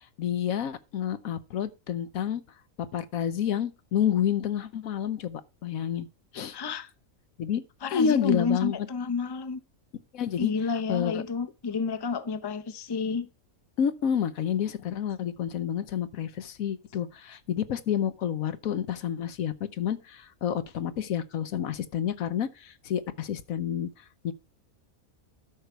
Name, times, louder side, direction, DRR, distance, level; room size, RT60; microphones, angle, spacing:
voice 1, 0.2-2.4 2.9-6.1 6.3-6.6 7.4-7.6 7.9-8.9 10.1-10.5 10.9-11.2 13.8-23.9 24.2-24.3, left 9 dB, 75° left, 1.3 m, -29 dB
voice 2, 6.5-6.9 7.8-9.6 10.4-13.3, left 5 dB, 25° left, 0.7 m, -30 dB
12.5 x 6.6 x 4.5 m
omnidirectional pair, 1.5 m